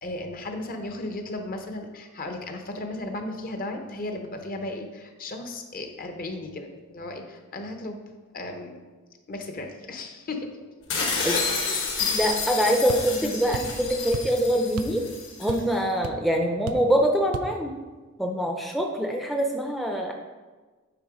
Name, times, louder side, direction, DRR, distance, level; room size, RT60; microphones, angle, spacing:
voice 1, 0.0-8.0 8.3-8.8 9.3-10.5 11.0-11.4, left 2 dB, 40° left, 5 dB, 0.8 m, -35 dB
sound 1, 10.9-15.6, left 5 dB, 60° left, 1.6 m, -29 dB
voice 2, 12.1-15.0 15.4-17.7 18.2-20.1, equal, ahead, 2 dB, 0.5 m, -24 dB
sound 2, 12.9-13.1 13.5-13.8 14.1-14.4 14.8-15.0 15.3-15.8 16.0-16.2 16.7-16.9 17.3-17.5, right 4 dB, 75° right, 0.5 m, -34 dB
9.5 x 3.8 x 4.9 m, 1.3 s
head